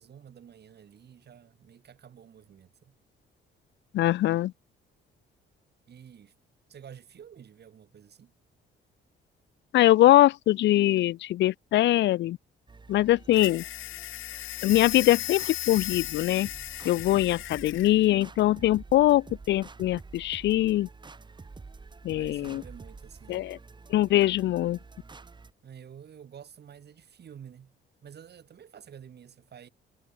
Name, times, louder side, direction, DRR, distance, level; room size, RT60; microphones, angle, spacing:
voice 1, 0.0-3.0 5.9-6.3 6.7-8.3 22.1-23.5 25.6-29.7, right 8 dB, 55° right, 5.4 m, -50 dB
voice 2, 3.9-4.5 9.7-12.4 12.9-13.6 14.6-16.5 16.8-20.9 22.0-22.6 23.3-23.6 23.9-24.8, left 14 dB, 65° left, 0.4 m, -22 dB
sound 1, 12.7-25.5, right 4 dB, 25° right, 1.3 m, -48 dB
sound 2, 13.3-17.9, left 16 dB, 90° left, 1.0 m, -36 dB
cardioid pair, 90°, 20 cm